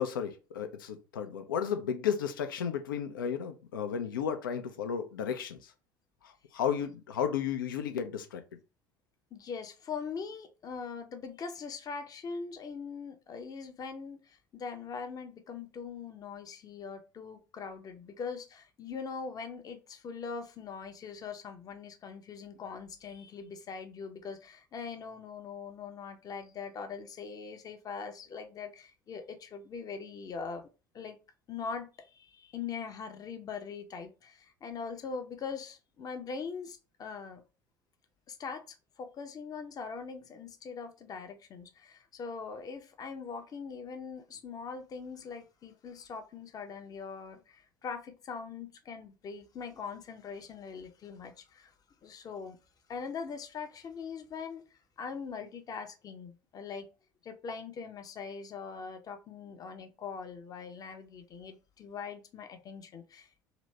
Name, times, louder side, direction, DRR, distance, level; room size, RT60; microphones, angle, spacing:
voice 1, 0.0-5.7 6.2-8.4, left 8 dB, 75° left, 0.5 m, -33 dB
voice 2, 9.3-30.7 30.9-31.2 31.5-37.4 38.3-38.6 39.0-51.7 52.0-52.6 52.9-54.6 55.0-56.9 57.2-63.3, left 5 dB, 35° left, 0.7 m, -42 dB
2.9 x 2.7 x 3.2 m
figure-of-eight pair, 65°, 11 cm